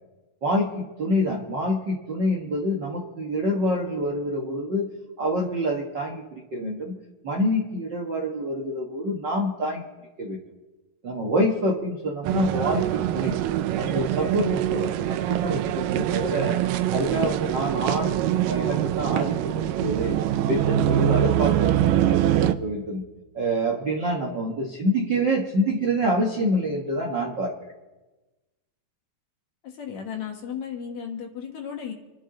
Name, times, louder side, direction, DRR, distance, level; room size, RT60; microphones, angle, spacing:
voice 1, 0.4-4.9 5.2-6.9 7.2-9.8 10.2-10.4 11.0-13.3 13.8-16.6 16.9-18.2 18.4-20.2 20.5-23.0 23.3-27.5, equal, 50° right, 0 dB, 1.4 m, -26 dB
sound 1, 12.2-22.5, right 12 dB, 80° right, 2.2 m, -24 dB
voice 2, 29.6-31.9, left 7 dB, 60° left, 2 dB, 2.6 m, -34 dB
27.5 x 11.0 x 3.9 m, 1.2 s
omnidirectional pair, 4.0 m